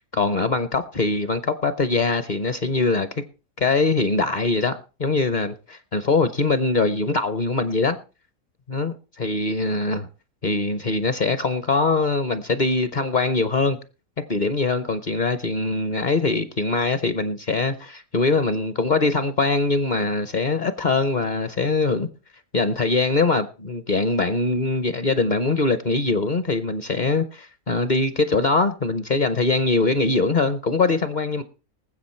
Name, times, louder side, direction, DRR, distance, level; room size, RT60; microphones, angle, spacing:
voice 1, 0.1-3.1 3.6-8.0 8.7-10.1 10.4-13.8 14.3-22.1 22.5-31.4, left 3 dB, 45° left, 0.7 m, -22 dB
19.5 x 7.8 x 4.3 m
omnidirectional pair, 1.5 m